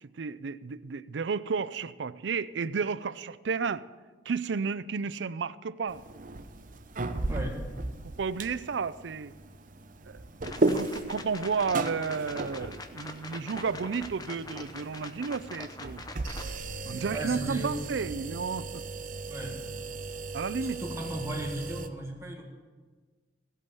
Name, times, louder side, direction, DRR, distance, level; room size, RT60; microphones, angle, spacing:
voice 1, 0.0-3.9 4.3-6.0 8.2-9.3 10.1-10.2 10.7-16.0 16.9-18.8 20.3-20.8, right 5 dB, 85° right, 0.5 m, -32 dB
sound 1, 5.9-21.9, right 2 dB, 50° right, 0.8 m, -36 dB
voice 2, 7.3-7.7 17.1-17.8 19.3-19.7 20.6-22.5, right 1 dB, 15° right, 1.7 m, -36 dB
sound 2, 10.4-16.6, left 2 dB, 20° left, 0.8 m, -43 dB
16.0 x 8.4 x 6.9 m
head